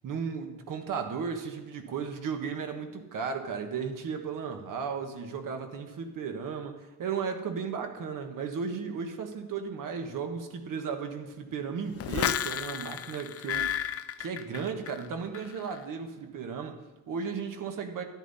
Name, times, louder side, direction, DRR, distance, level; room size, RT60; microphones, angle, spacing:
voice 1, 0.0-13.7 14.2-18.0, right 6 dB, 60° right, 5 dB, 1.6 m, -35 dB
sound 1, 12.0-15.1 15.3-15.8, left 10 dB, 40° left, 0.4 m, -32 dB
13.5 x 10.5 x 4.2 m, 1.2 s
cardioid pair, 160°, 36 cm